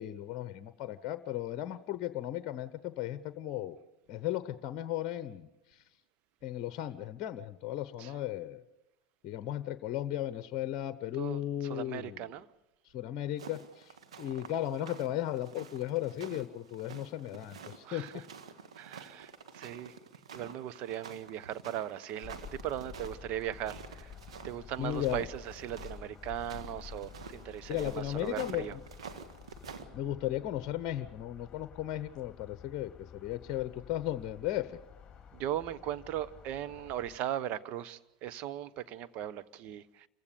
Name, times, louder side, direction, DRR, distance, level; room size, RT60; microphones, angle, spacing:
voice 1, 0.0-3.8 4.1-5.5 6.4-8.6 9.2-12.2 12.9-18.2 24.8-25.3 27.7-28.7 29.9-34.8, left 12 dB, 45° left, 0.9 m, -36 dB
voice 2, 11.1-12.5 17.8-18.2 18.8-20.0 20.3-24.1 24.4-28.8 35.3-40.1, right 11 dB, 50° right, 1.0 m, -38 dB
sound 1, 13.4-29.8, right 6 dB, 80° right, 1.6 m, -49 dB
sound 2, 22.2-37.2, left 8 dB, 25° left, 2.4 m, -51 dB
28.0 x 15.5 x 6.9 m
hypercardioid pair, 90°, 3 cm